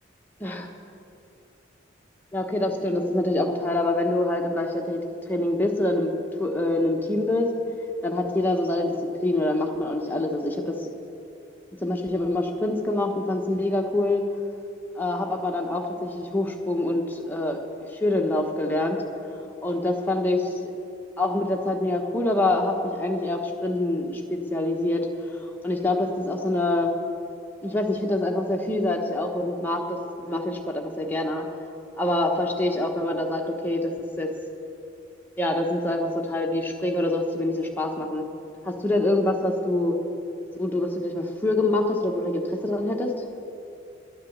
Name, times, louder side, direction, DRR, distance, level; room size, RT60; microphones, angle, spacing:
voice 1, 2.3-5.0 5.3-6.1 6.4-7.5 8.0-8.9 9.2-10.9 11.7-14.2 15.0-17.6 17.9-19.0 19.6-20.7 21.2-25.1 25.6-26.9 27.6-30.0 30.2-31.5 32.0-33.9 34.2-34.3 35.4-38.2 38.6-40.0 40.6-43.1, left 2 dB, 10° left, 1 dB, 1.0 m, -25 dB
11.0 x 10.0 x 7.2 m, 2.7 s
head